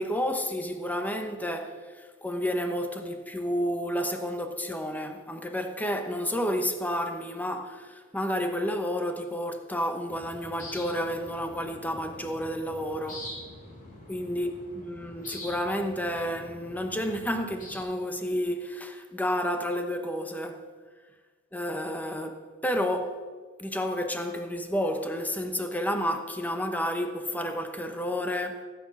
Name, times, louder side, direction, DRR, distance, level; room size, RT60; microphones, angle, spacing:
voice 1, 0.0-13.3 14.1-20.6 21.5-23.2 23.6-28.6, equal, 10° left, 0.9 m, -31 dB
sound 1, 10.1-17.8, left 1 dB, 40° left, 3.1 m, -45 dB
17.0 x 8.6 x 5.5 m
head